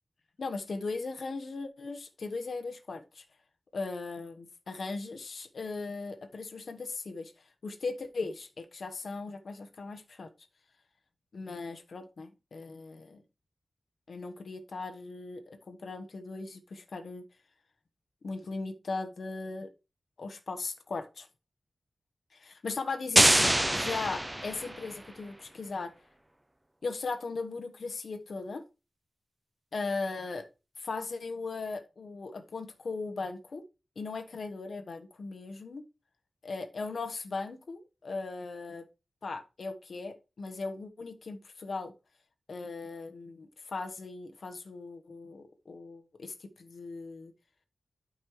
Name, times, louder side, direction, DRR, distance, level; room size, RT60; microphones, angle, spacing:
voice 1, 0.4-3.2 3.7-4.3 4.7-7.3 7.6-10.3 11.3-13.2 14.1-17.2 18.2-19.7 20.2-21.3 22.3-25.9 26.8-28.6 29.7-30.4 30.8-33.6 34.0-35.8 36.4-38.8 39.2-41.9 42.5-47.3, left 3 dB, 70° left, 7 dB, 1.1 m, -38 dB
sound 1, 23.2-25.0, right 1 dB, 15° right, 0.5 m, -25 dB
12.0 x 5.4 x 3.1 m, 0.30 s
wide cardioid pair, 115°, 0 cm